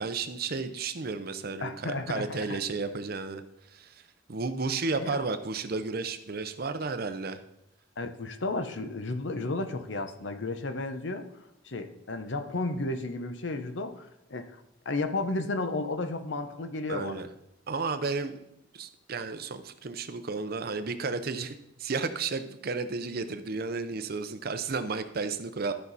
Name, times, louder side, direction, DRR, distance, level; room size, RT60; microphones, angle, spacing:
voice 1, 0.0-3.4 3.7-4.0 4.3-7.4 16.9-17.3 17.7-18.4 18.7-25.7, right 4 dB, 50° right, 10 dB, 0.7 m, -33 dB
voice 2, 1.6-2.6 5.0-5.2 8.0-11.3 11.6-14.6 14.8-17.2, left 2 dB, 65° left, 8 dB, 0.8 m, -33 dB
12.5 x 5.8 x 4.1 m, 0.81 s
head